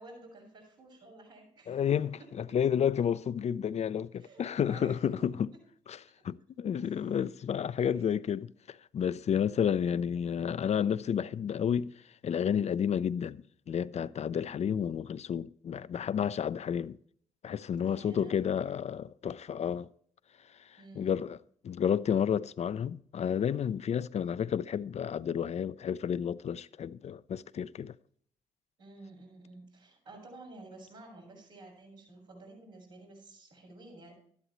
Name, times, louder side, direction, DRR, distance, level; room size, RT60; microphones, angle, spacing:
voice 1, 0.0-1.8 2.5-2.6 4.2-5.2 6.8-7.2 7.7-8.2 17.8-18.4 20.8-21.3 28.8-34.1, right 2 dB, 85° right, 5.6 m, -51 dB
voice 2, 1.7-5.5 5.9-6.0 6.2-11.9 12.2-17.0 17.4-19.9 21.0-21.4 21.6-27.9, left 8 dB, 45° left, 0.4 m, -31 dB
12.5 x 11.5 x 3.0 m
hypercardioid pair, 40°, 16 cm